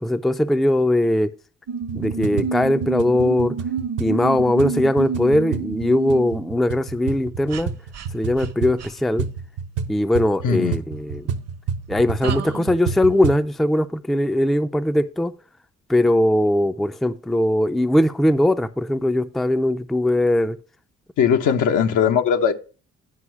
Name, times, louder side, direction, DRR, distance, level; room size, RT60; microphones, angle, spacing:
voice 1, 0.0-1.3 1.9-3.5 4.0-7.7 8.1-9.3 9.9-11.3 11.9-15.3 15.9-20.6, left 1 dB, ahead, 0.4 m, -20 dB
sound 1, 1.7-6.5 7.5-7.6 7.9-8.1 8.4-8.5 8.8-8.9 12.2-12.8, right 6 dB, 55° right, 0.9 m, -29 dB
sound 2, 1.8-13.5, right 6 dB, 80° right, 1.0 m, -30 dB
voice 2, 10.4-10.8 21.2-22.5, left 7 dB, 80° left, 1.1 m, -19 dB
9.9 x 5.5 x 4.7 m
cardioid pair, 90°, 30 cm